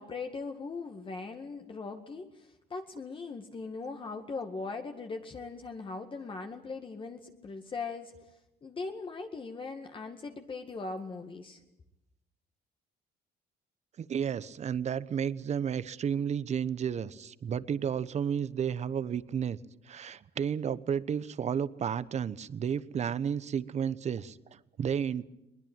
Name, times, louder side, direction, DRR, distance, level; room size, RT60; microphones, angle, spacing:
voice 1, 0.0-8.1 8.6-11.6, left 4 dB, 30° left, 4 dB, 1.9 m, -40 dB
voice 2, 14.0-19.6 19.9-25.2, right 8 dB, 40° right, 17 dB, 1.0 m, -32 dB
21.5 x 20.0 x 8.9 m, 0.92 s
cardioid pair, 110°, 17 cm